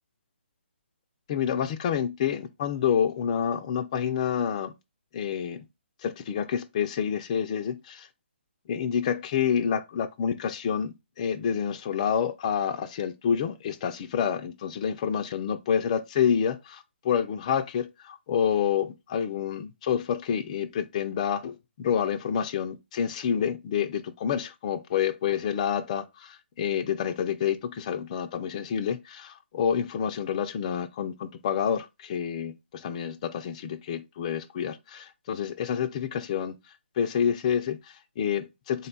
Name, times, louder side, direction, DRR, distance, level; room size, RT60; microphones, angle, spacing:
voice 1, 1.3-4.7 5.1-5.6 6.0-8.1 8.7-36.5 37.0-38.9, left 8 dB, 35° left, 0.4 m, -28 dB
3.8 x 2.2 x 3.9 m
hypercardioid pair, 150°, 7 cm